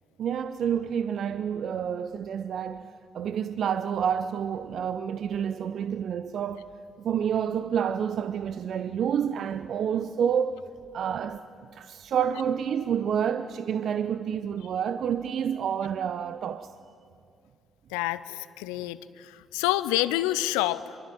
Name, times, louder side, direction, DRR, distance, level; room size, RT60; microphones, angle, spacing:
voice 1, 0.2-6.6 7.0-10.6 10.9-11.4 11.7-16.7, right 8 dB, 60° right, 0.7 m, -29 dB
voice 2, 17.9-21.0, left 16 dB, 80° left, 0.7 m, -28 dB
25.5 x 23.0 x 9.3 m
hypercardioid pair, 40°, 0 cm